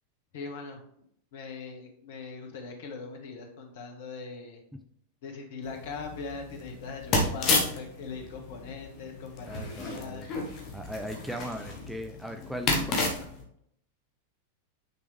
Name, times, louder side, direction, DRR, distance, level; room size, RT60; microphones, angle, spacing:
voice 1, 0.3-1.1 1.3-4.6 5.2-10.3, left 4 dB, 55° left, 2 dB, 1.5 m, -41 dB
sound 1, 5.7-13.4, left 2 dB, 35° left, 1.6 m, -32 dB
voice 2, 9.5-10.3 10.7-12.9, equal, 5° right, 5 dB, 0.6 m, -38 dB
9.3 x 3.4 x 3.4 m, 0.71 s
figure-of-eight pair, 90°, 0 cm